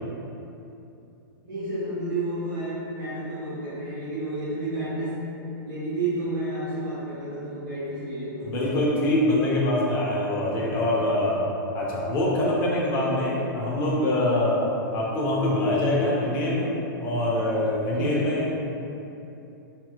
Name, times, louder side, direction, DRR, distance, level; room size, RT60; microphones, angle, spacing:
voice 1, 1.4-5.3 5.7-8.7 17.9-18.4, right 1 dB, 70° right, -9 dB, 1.0 m, -31 dB
voice 2, 8.4-11.4 11.7-14.6 14.9-16.7 17.0-18.5, left 1 dB, 15° left, -5 dB, 0.4 m, -24 dB
4.4 x 2.9 x 2.3 m, 2.9 s
supercardioid pair, 175°, 12 cm